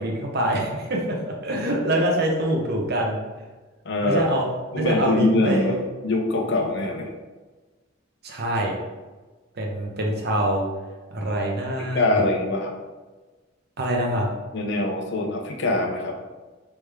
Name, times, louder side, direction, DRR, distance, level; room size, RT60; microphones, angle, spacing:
voice 1, 0.0-3.2 4.0-4.5 4.7-5.8 8.2-8.8 9.5-10.7 11.1-12.2 13.8-14.3, right 1 dB, 55° right, 0 dB, 0.8 m, -25 dB
voice 2, 3.9-4.3 4.7-5.8 6.0-7.1 11.8-12.7 14.5-16.1, left 2 dB, 60° left, 2 dB, 0.6 m, -23 dB
3.4 x 3.3 x 3.3 m, 1.2 s
head